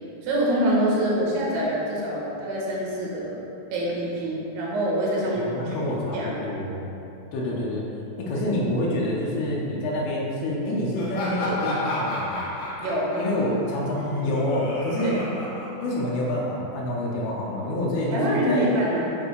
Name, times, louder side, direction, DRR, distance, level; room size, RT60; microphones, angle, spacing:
voice 1, 0.2-3.4 3.7-5.8 6.1-6.3 12.8-13.1 15.0-15.2 18.1-19.2, right 1 dB, 85° right, -5 dB, 3.3 m, -25 dB
voice 2, 5.4-6.8 7.3-7.9 8.2-12.5 13.2-15.2 15.8-18.7, left 1 dB, 75° left, -4 dB, 2.7 m, -27 dB
Laughter, 10.9-16.4, left 1 dB, 55° left, 2.3 m, -32 dB
8.8 x 4.7 x 3.3 m, 2.8 s
omnidirectional pair, 4.7 m